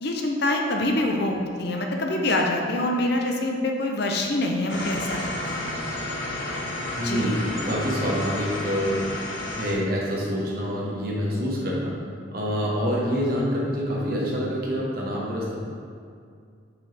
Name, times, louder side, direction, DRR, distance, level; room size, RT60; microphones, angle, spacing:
voice 1, 0.0-5.6 7.0-7.4, left 1 dB, 55° left, 2 dB, 0.7 m, -25 dB
sound 1, 4.7-9.7, left 1 dB, 75° left, 1.2 m, -31 dB
voice 2, 7.0-9.0 9.5-12.0 12.3-15.6, equal, 50° right, -4 dB, 1.3 m, -26 dB
6.7 x 5.5 x 3.5 m, 2.3 s
head